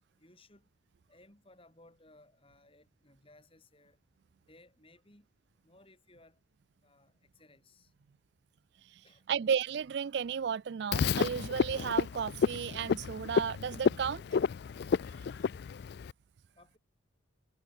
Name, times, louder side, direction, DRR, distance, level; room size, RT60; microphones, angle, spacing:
voice 1, 0.2-0.7 1.1-4.0 4.4-5.3 5.6-6.4 6.8-7.9 9.0-9.2 16.5-16.8, left 2 dB, 30° left, 4.6 m, -61 dB
voice 2, 9.3-14.2, right 7 dB, 55° right, 0.3 m, -33 dB
Frog, 10.9-16.1, left 6 dB, 55° left, 0.3 m, -31 dB
head